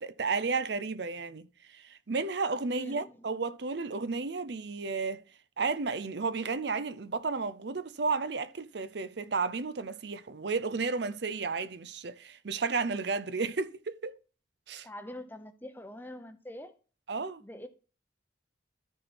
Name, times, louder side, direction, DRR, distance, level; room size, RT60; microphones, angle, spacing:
voice 1, 0.0-5.2 5.6-14.2 14.7-14.9 17.1-17.4, right 4 dB, 60° right, 0.6 m, -33 dB
voice 2, 2.7-3.2 14.8-16.7 17.4-17.7, left 1 dB, 10° left, 0.8 m, -44 dB
13.0 x 4.4 x 4.3 m
head